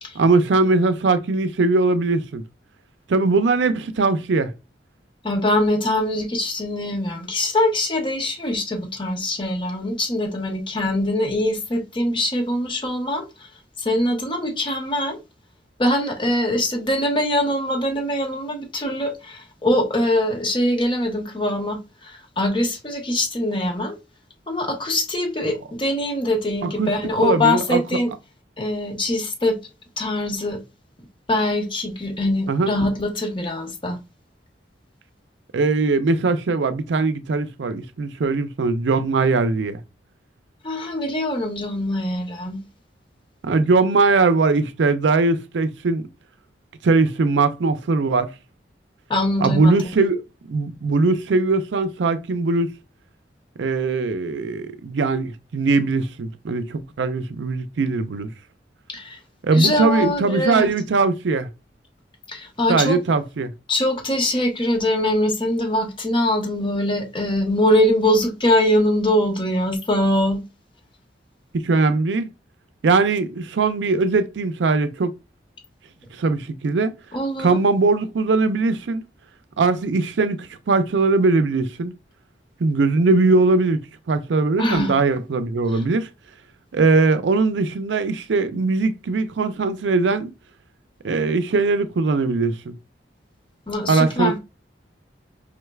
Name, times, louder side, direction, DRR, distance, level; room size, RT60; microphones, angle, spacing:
voice 1, 0.2-2.4 3.1-4.5 25.4-25.5 26.6-26.9 27.2-27.8 32.5-32.7 35.5-39.8 43.4-46.0 46.8-48.3 49.4-50.2 50.5-52.7 53.6-58.3 59.4-61.5 62.7-63.5 71.6-72.3 72.8-75.1 76.2-76.9 77.4-79.0 79.6-82.0 82.6-83.8 84.1-86.1 86.7-90.3 91.0-92.8 93.9-94.4, right 3 dB, 90° right, 0.5 m, -20 dB
voice 2, 5.2-13.5 13.8-15.2 15.8-24.0 24.5-28.1 28.6-29.6 30.0-30.6 31.3-34.0 40.6-42.6 49.1-49.7 58.9-59.2 59.5-60.7 62.3-63.0 63.7-70.4 77.1-77.6 84.6-84.9 85.7-85.8 93.7-94.4, left 1 dB, 30° left, 0.9 m, -23 dB
5.0 x 3.2 x 2.3 m
head